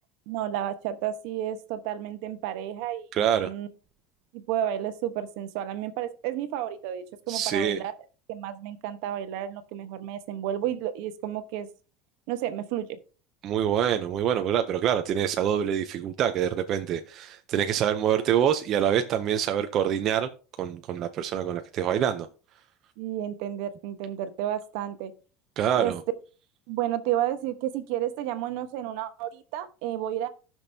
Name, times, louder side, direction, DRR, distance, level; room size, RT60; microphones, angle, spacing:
voice 1, 0.3-3.7 4.3-7.9 8.3-11.7 12.3-12.9 23.0-25.1 25.8-25.9 26.7-30.3, right 11 dB, 65° right, 10 dB, 1.0 m, -31 dB
voice 2, 3.1-3.5 7.3-7.8 13.4-20.3 20.6-22.3 25.6-26.0, right 9 dB, 35° right, 7 dB, 0.6 m, -25 dB
17.5 x 6.0 x 2.7 m, 0.36 s
cardioid pair, 170°, 0 cm